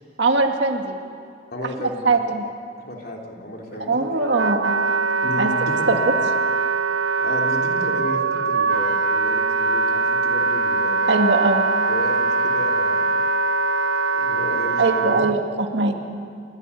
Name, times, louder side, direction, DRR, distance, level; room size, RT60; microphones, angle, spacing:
voice 1, 0.2-1.0 1.8-2.4 3.9-4.8 5.4-5.5 5.9-6.1 11.1-11.6 14.8-15.9, right 3 dB, 65° right, 3 dB, 2.1 m, -21 dB
voice 2, 1.5-2.2 2.9-3.9 5.2-6.1 7.2-10.9 11.9-13.3 14.1-15.3, left 1 dB, 50° left, 0 dB, 3.4 m, -33 dB
Wind instrument woodwind instrument, 3.7-15.3, right 4 dB, 85° right, 1.1 m, -22 dB
28.5 x 13.5 x 9.9 m, 2.4 s
head